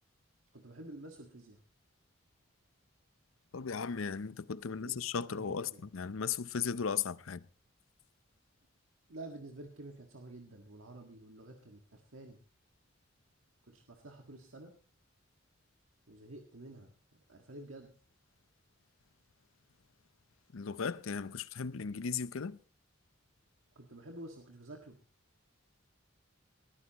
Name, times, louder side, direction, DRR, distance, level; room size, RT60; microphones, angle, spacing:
voice 1, 0.5-1.6 4.6-5.8 9.1-12.4 13.6-14.7 16.1-17.9 23.8-25.0, right 2 dB, 90° right, 1.7 m, -50 dB
voice 2, 3.5-7.5 20.5-22.6, left 6 dB, 90° left, 0.6 m, -36 dB
19.5 x 14.0 x 3.0 m
head